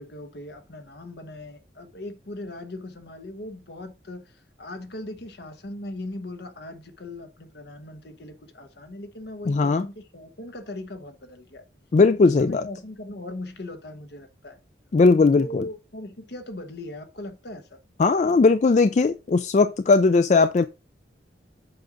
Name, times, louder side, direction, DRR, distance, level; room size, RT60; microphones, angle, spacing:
voice 1, 0.0-11.6 12.2-14.6 15.3-17.8, left 1 dB, 65° left, 1.1 m, -39 dB
voice 2, 9.5-9.9 11.9-12.6 14.9-15.6 18.0-20.7, left 4 dB, 40° left, 0.3 m, -18 dB
7.8 x 5.4 x 3.8 m
head